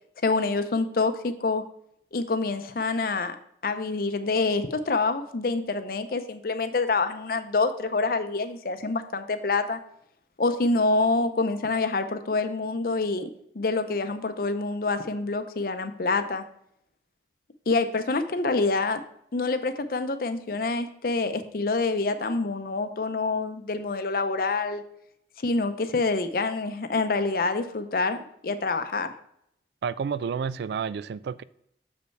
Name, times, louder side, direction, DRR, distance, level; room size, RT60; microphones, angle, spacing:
voice 1, 0.2-1.6 2.1-3.4 3.6-9.8 10.4-13.3 13.5-16.4 17.7-19.0 19.3-24.8 25.4-29.1, left 3 dB, 55° left, 9 dB, 0.6 m, -26 dB
voice 2, 29.8-31.4, right 6 dB, 70° right, 18 dB, 0.3 m, -30 dB
6.7 x 5.3 x 4.5 m, 0.73 s
head